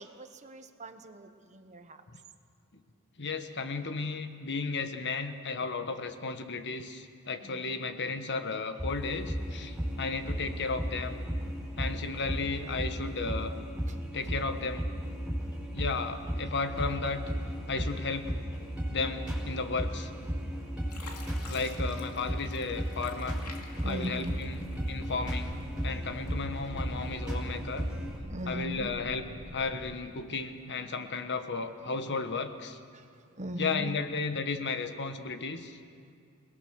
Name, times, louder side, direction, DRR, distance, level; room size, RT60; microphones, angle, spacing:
voice 1, 0.0-2.0 7.4-7.8 13.9-14.0 19.5-19.6 20.2-21.4 23.7-24.4 28.0-28.9 32.9-33.1 33.4-33.9, equal, 30° right, 8 dB, 1.2 m, -41 dB
voice 2, 3.2-11.2 11.8-13.6 14.1-14.9 15.7-17.2 17.7-18.3 18.9-20.1 21.4-23.4 23.8-27.9 28.5-29.2 29.5-32.8 33.6-35.8, left 4 dB, 50° left, 8 dB, 1.3 m, -34 dB
sound 1, 8.8-28.2, equal, 5° right, 5.5 m, -35 dB
Fill (with liquid), 20.1-20.5 20.9-25.3 25.7-26.5 27.1-27.2, left 4 dB, 85° left, 2.6 m, -50 dB
sound 2, 24.4-30.0, right 1 dB, 65° right, 1.8 m, -45 dB
28.5 x 19.0 x 6.5 m, 2.3 s
head